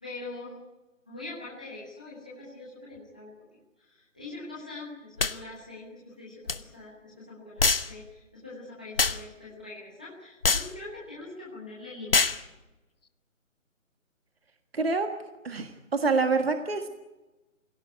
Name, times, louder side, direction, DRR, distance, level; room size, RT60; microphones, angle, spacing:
voice 1, 0.0-0.6 1.1-3.4 3.8-12.2, left 2 dB, 5° left, -7 dB, 1.2 m, -43 dB
sound 1, 5.2-5.4 6.5-6.6 7.6-7.9 9.0-9.2 10.4-10.7 12.1-12.4, left 4 dB, 45° left, 0.9 m, -24 dB
voice 2, 14.7-15.1 15.4-16.9, right 4 dB, 50° right, 6 dB, 1.7 m, -26 dB
26.0 x 17.0 x 9.4 m, 1.1 s
hypercardioid pair, 180°, 40 cm